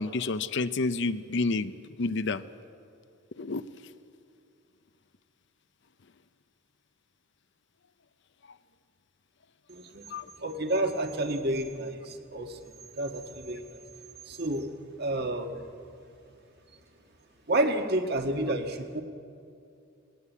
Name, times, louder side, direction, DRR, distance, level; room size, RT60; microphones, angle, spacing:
voice 1, 0.0-1.7 2.0-2.4 3.4-3.6 10.1-10.3, left 3 dB, 60° left, 14 dB, 0.6 m, -29 dB
voice 2, 9.7-10.0 10.4-13.8 14.3-14.7 15.0-15.6 17.5-19.0, right 1 dB, 50° right, 5 dB, 1.5 m, -30 dB
20.0 x 18.0 x 8.4 m, 2.5 s
head